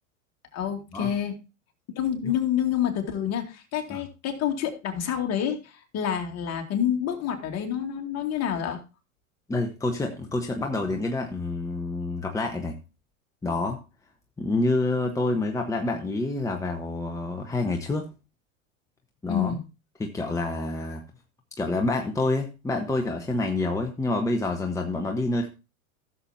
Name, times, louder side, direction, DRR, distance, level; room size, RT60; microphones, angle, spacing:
voice 1, 0.5-1.4 2.0-8.8 19.3-19.6, left 9 dB, 40° left, 3 dB, 2.3 m, -28 dB
voice 2, 9.5-12.8 13.4-13.8 14.4-18.1 19.2-19.6 20.0-21.0 21.6-25.5, left 2 dB, 10° left, 3 dB, 1.1 m, -27 dB
15.0 x 7.1 x 2.8 m, 0.28 s
hypercardioid pair, 95°, 41 cm